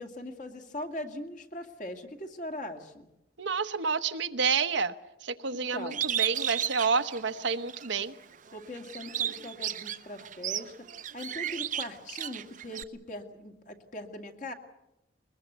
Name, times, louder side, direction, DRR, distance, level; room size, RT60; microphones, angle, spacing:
voice 1, 0.0-3.1 5.5-6.0 8.5-10.9 11.1-14.5, left 1 dB, 45° left, 4 dB, 2.2 m, -40 dB
voice 2, 3.4-4.9 5.2-8.1, right 5 dB, 75° right, 9 dB, 1.0 m, -29 dB
Bird, 5.9-7.9 8.3-12.8, right 10 dB, 45° right, 0.7 m, -33 dB
21.5 x 21.0 x 8.1 m, 0.91 s
head